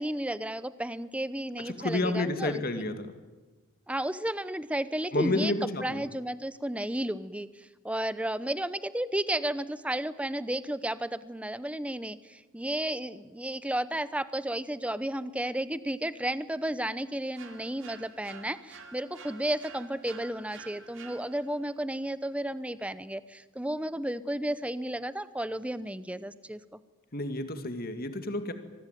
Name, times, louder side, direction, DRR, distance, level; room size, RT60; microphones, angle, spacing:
voice 1, 0.0-2.6 2.9-3.1 3.9-26.8, right 1 dB, 5° right, 15 dB, 0.7 m, -33 dB
voice 2, 1.7-3.1 5.1-6.0 27.1-28.5, left 2 dB, 45° left, 8 dB, 2.2 m, -30 dB
sound 1, 17.3-21.7, right 4 dB, 60° right, 2.8 m, -49 dB
25.0 x 19.0 x 9.2 m, 1.2 s
head